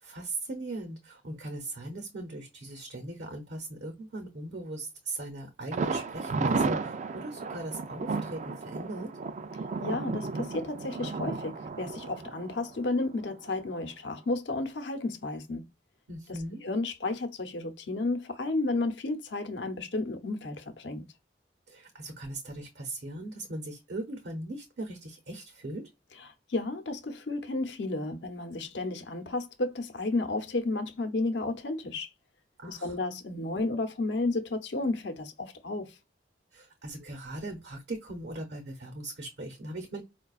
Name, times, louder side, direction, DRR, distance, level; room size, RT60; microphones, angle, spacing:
voice 1, 0.0-9.1 16.1-16.6 21.7-25.8 32.6-33.0 36.5-40.0, right 2 dB, 65° right, 0.8 m, -39 dB
Thunder, 5.7-13.5 13.8-13.9 14.3-14.4, right 4 dB, 40° right, 0.3 m, -33 dB
voice 2, 9.8-15.7 16.3-21.1 26.2-32.1 32.7-35.9, left 2 dB, 85° left, 0.7 m, -32 dB
4.6 x 2.2 x 2.4 m
head